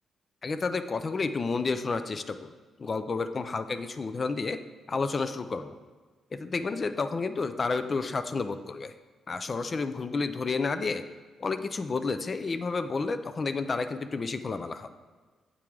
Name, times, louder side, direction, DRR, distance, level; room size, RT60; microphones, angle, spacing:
voice 1, 0.4-2.5 2.8-4.6 4.9-5.8 6.3-8.9 9.3-11.0 11.4-14.9, left 4 dB, 30° left, 10 dB, 0.3 m, -30 dB
8.3 x 3.7 x 4.6 m, 1.4 s
cardioid pair, 145°, 0 cm